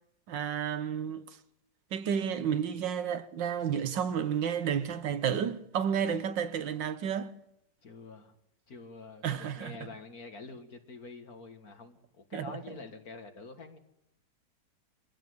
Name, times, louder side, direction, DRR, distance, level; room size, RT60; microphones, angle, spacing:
voice 1, 0.3-1.3 1.9-7.3 9.2-9.8 12.3-12.5, right 8 dB, 75° right, 1.7 m, -31 dB
voice 2, 7.8-8.3 8.7-13.8, left 3 dB, 50° left, 2.2 m, -47 dB
24.0 x 17.0 x 7.9 m
omnidirectional pair, 2.0 m